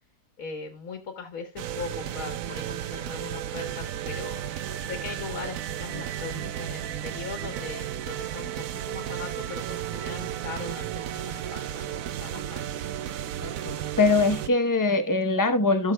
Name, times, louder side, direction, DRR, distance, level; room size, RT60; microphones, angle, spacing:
voice 1, 0.4-4.4 4.9-12.6, left 5 dB, 60° left, 1.6 m, -39 dB
sound 1, 1.6-14.5, right 11 dB, 65° right, 0.9 m, -33 dB
voice 2, 13.4-15.9, left 3 dB, 30° left, 0.3 m, -23 dB
16.0 x 6.5 x 2.2 m
omnidirectional pair, 1.8 m